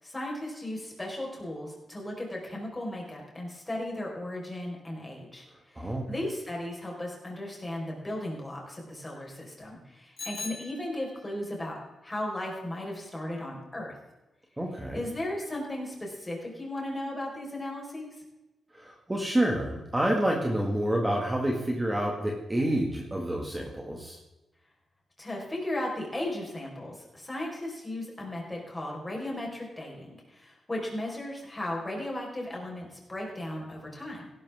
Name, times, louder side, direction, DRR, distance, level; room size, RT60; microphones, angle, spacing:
voice 1, 0.0-14.0 14.9-18.1 25.2-34.3, left 1 dB, 15° left, -1 dB, 4.7 m, -36 dB
Bicycle bell, 10.2-11.4, left 4 dB, 50° left, 3.4 m, -41 dB
voice 2, 14.6-15.0 18.7-24.2, right 1 dB, 15° right, 0 dB, 2.0 m, -28 dB
17.0 x 12.0 x 3.6 m, 1.0 s
cardioid pair, 105°, 0 cm